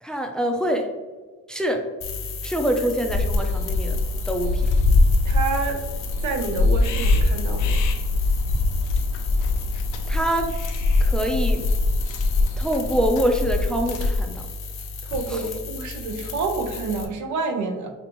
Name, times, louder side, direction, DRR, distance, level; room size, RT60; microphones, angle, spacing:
voice 1, 0.0-0.9 1.5-1.8 2.4-4.0 4.3-4.6 10.1-10.5 11.0-11.7 12.6-14.5 15.3-15.4, equal, 5° left, 3 dB, 0.4 m, -25 dB
sound 1, 2.0-17.1, left 4 dB, 45° left, 0.6 m, -35 dB
sound 2, 3.1-14.2, left 2 dB, 90° left, 0.6 m, -22 dB
voice 2, 5.2-5.8 6.2-7.8 15.0-17.9, right 4 dB, 75° right, 5 dB, 0.7 m, -28 dB
5.3 x 2.5 x 2.9 m, 1.3 s
cardioid pair, 90°, 30 cm